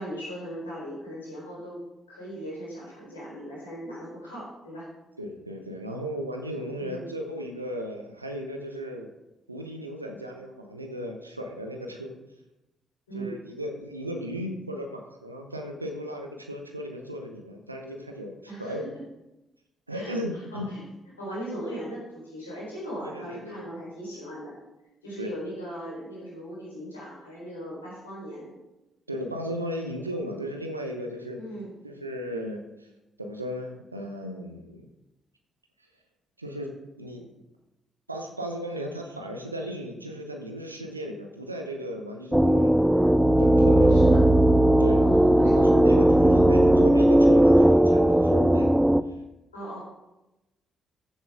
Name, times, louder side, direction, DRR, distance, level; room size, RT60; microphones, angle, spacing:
voice 1, 0.0-4.9 6.8-7.1 13.1-13.4 18.5-18.8 19.9-20.8 21.2-24.5 25.0-28.5 31.3-31.7 43.7-44.3 44.9-45.9 49.5-49.8, right 1 dB, 85° left, -7 dB, 4.2 m, -38 dB
voice 2, 5.2-9.1 9.5-12.1 13.1-18.9 19.9-20.7 23.0-23.7 25.2-25.3 29.1-31.4 31.8-32.9 33.2-34.9 36.4-37.3 38.1-42.8 43.4-44.1 44.8-45.0 45.5-48.8, equal, 90° right, 2 dB, 1.0 m, -36 dB
sound 1, 42.3-49.0, right 1 dB, 5° right, 0.5 m, -18 dB
14.0 x 7.2 x 3.7 m, 0.97 s
figure-of-eight pair, 40°, 0 cm